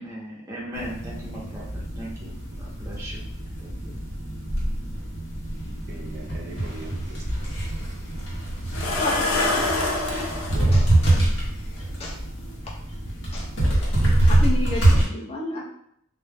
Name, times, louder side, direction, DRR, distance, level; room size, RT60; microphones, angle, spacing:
voice 1, 0.0-3.2 3.6-3.9, equal, 15° right, -5 dB, 0.7 m, -38 dB
sound 1, 0.7-15.0, right 1 dB, 60° left, 0.8 m, -25 dB
voice 2, 5.9-7.5 10.5-10.8, right 3 dB, 55° right, 1 dB, 0.5 m, -41 dB
sound 2, 7.6-7.7 8.7-10.5 11.8-11.9 12.4-12.5, left 2 dB, 85° left, 0.5 m, -25 dB
voice 3, 8.8-10.0 10.7-11.2 12.0-12.3 13.3-13.5 13.9-15.6, left 2 dB, 30° left, -4 dB, 0.6 m, -32 dB
2.2 x 2.1 x 3.3 m, 0.70 s
head